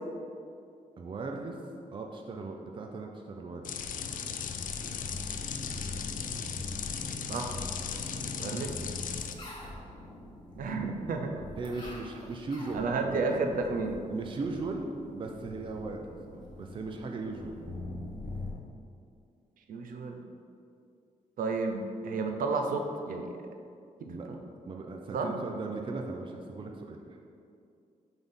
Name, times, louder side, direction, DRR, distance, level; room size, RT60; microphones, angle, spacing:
voice 1, 1.0-1.6 1.9-4.0 11.6-13.4 14.1-17.8 24.1-27.0, right 3 dB, 35° right, 2 dB, 0.5 m, -38 dB
sound 1, 3.6-9.3, left 8 dB, 75° left, 0.4 m, -37 dB
sound 2, 3.8-18.5, left 2 dB, 30° left, 1.2 m, -43 dB
voice 2, 8.2-8.7 10.6-11.4 12.7-14.0 19.7-20.2 21.4-23.3 24.0-24.2 25.1-25.4, right 3 dB, 85° right, 3 dB, 0.6 m, -32 dB
6.0 x 3.5 x 5.4 m, 2.5 s
wide cardioid pair, 145°, 14 cm